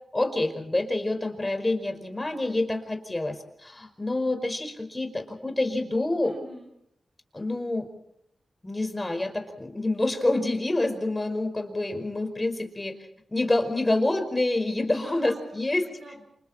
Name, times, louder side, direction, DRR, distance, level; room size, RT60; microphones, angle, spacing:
voice 1, 0.1-6.3 7.3-7.9 8.6-12.9 13.3-15.9, left 2 dB, 25° left, 7 dB, 5.2 m, -27 dB
voice 2, 6.2-6.7 14.9-16.2, right 1 dB, 75° right, 1 dB, 5.7 m, -44 dB
28.5 x 27.5 x 4.4 m, 0.75 s
cardioid pair, 50°, 0 cm